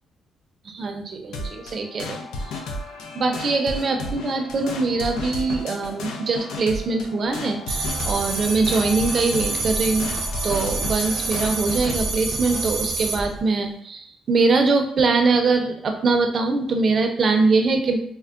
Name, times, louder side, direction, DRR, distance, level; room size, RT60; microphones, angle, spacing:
voice 1, 0.6-2.6 3.1-10.1 10.4-18.0, right 3 dB, 50° right, 4 dB, 0.5 m, -22 dB
sound 1, 1.3-12.0, left 2 dB, 90° left, 0.4 m, -33 dB
sound 2, 7.7-13.4, left 1 dB, 20° left, 0.6 m, -34 dB
sound 3, 7.7-13.2, right 3 dB, 85° right, 0.7 m, -28 dB
4.4 x 2.1 x 2.4 m, 0.67 s
cardioid pair, 90°, 0 cm